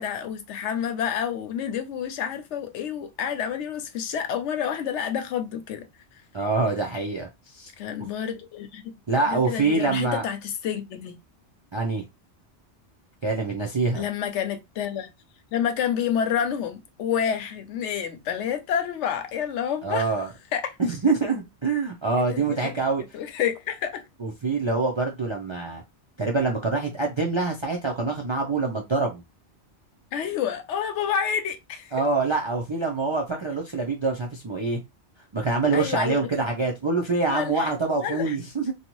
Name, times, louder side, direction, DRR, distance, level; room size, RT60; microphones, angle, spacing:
voice 1, 0.0-5.8 6.1-6.2 7.8-8.9 9.3-11.2 13.9-15.1 15.5-20.1 20.5-20.8 22.3-22.8 23.1-24.0 30.1-31.9 35.7-36.5 37.3-38.4, left 8 dB, 80° left, 0.9 m, -29 dB
voice 2, 6.3-7.7 8.0-8.1 9.1-10.2 11.7-12.0 13.2-14.0 19.8-20.3 20.8-23.0 24.2-25.8 26.2-29.2 31.9-34.8 35.3-38.7, right 3 dB, 45° right, 0.3 m, -25 dB
2.7 x 2.3 x 2.9 m
omnidirectional pair, 1.2 m